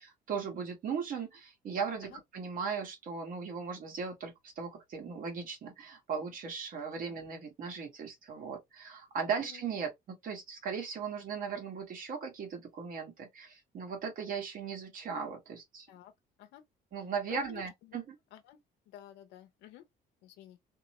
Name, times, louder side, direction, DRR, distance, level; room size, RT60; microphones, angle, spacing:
voice 1, 0.0-15.9 16.9-18.2, right 6 dB, 55° right, 1.3 m, -38 dB
voice 2, 17.3-18.0 18.3-18.6 18.9-19.8 20.2-20.6, left 11 dB, 90° left, 0.7 m, -52 dB
2.9 x 2.0 x 2.9 m
cardioid pair, 110°, 17 cm